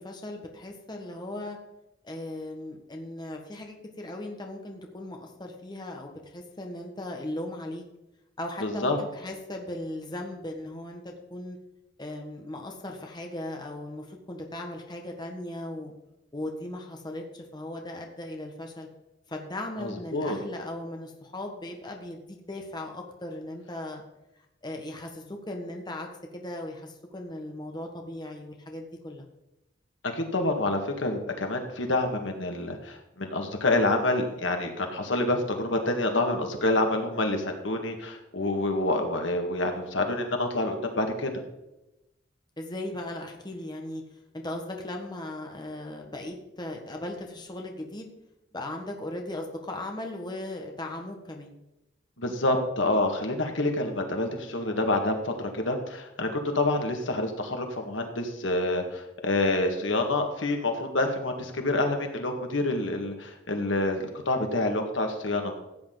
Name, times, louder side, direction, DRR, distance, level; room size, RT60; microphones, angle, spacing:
voice 1, 0.0-1.6 2.0-7.8 8.4-11.6 12.0-15.9 16.3-18.9 19.3-24.0 24.6-26.1 26.3-29.2 42.6-44.0 44.3-48.1 48.5-51.5, left 1 dB, 25° left, 2 dB, 1.4 m, -37 dB
voice 2, 8.6-9.0 19.8-20.4 30.0-41.3 52.2-65.5, left 2 dB, 80° left, 4 dB, 1.9 m, -27 dB
15.5 x 8.5 x 4.0 m, 0.92 s
head